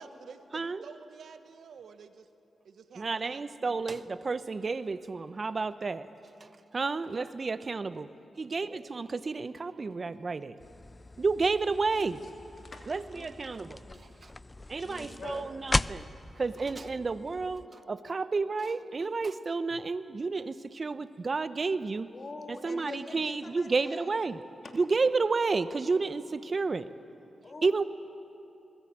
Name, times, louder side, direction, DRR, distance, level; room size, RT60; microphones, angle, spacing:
voice 1, 0.0-2.3 2.6-3.9 6.8-7.0, right 6 dB, 75° right, 10 dB, 1.1 m, -50 dB
voice 2, 0.5-0.8 3.0-6.1 6.4-8.1 8.4-10.5 11.2-12.2 12.9-13.8 14.2-14.3 14.7-16.1 16.4-22.1 22.5-24.4 24.7-26.9 27.6-27.8, right 4 dB, 50° right, 14 dB, 0.9 m, -31 dB
sound 1, 10.6-17.7, left 2 dB, 25° left, 0.5 m, -38 dB
voice 3, 11.9-12.3 12.6-14.2 14.8-15.5 16.5-16.6 22.1-24.1 24.6-24.7 27.4-27.9, left 3 dB, 50° left, 3 dB, 2.7 m, -46 dB
21.0 x 18.0 x 8.8 m, 2.8 s
supercardioid pair, 50°, 0 cm